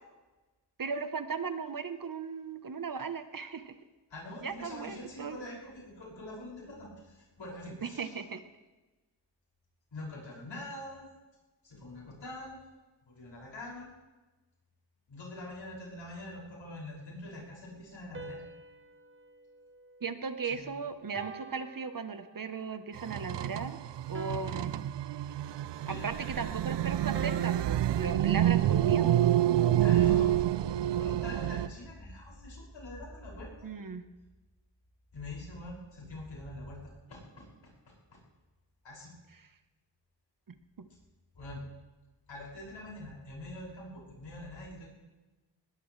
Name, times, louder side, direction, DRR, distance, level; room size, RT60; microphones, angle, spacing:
voice 1, 0.8-3.7 4.4-5.4 7.8-8.4 20.0-23.8 24.1-24.7 25.9-29.2 33.6-34.0, right 5 dB, 50° right, 10 dB, 1.1 m, -37 dB
voice 2, 4.1-8.1 9.9-11.1 11.6-12.6 13.1-13.9 15.1-18.4 20.4-20.7 25.8-26.2 29.8-30.5 30.8-33.7 35.1-36.8 37.1-38.2 38.8-39.1 41.3-41.6 42.3-44.9, left 1 dB, 80° left, -4 dB, 6.3 m, -44 dB
sound 1, 18.1-20.6 21.1-22.6 24.1-25.6 27.1-29.5, right 4 dB, 25° right, 1.0 m, -47 dB
sound 2, 23.0-31.7, right 12 dB, 70° right, 0.5 m, -28 dB
20.0 x 19.5 x 3.3 m, 1.2 s
wide cardioid pair, 75°, 44 cm